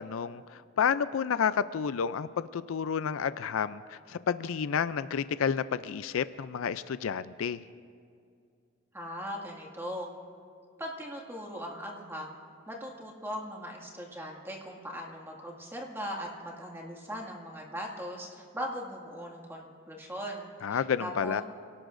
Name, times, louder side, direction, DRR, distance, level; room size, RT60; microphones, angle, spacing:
voice 1, 0.0-7.6 20.6-21.4, left 7 dB, 70° left, 14 dB, 0.4 m, -30 dB
voice 2, 8.9-10.1 10.8-12.4 12.7-21.4, equal, 10° right, -1 dB, 2.0 m, -39 dB
28.5 x 18.0 x 2.6 m, 2.3 s
head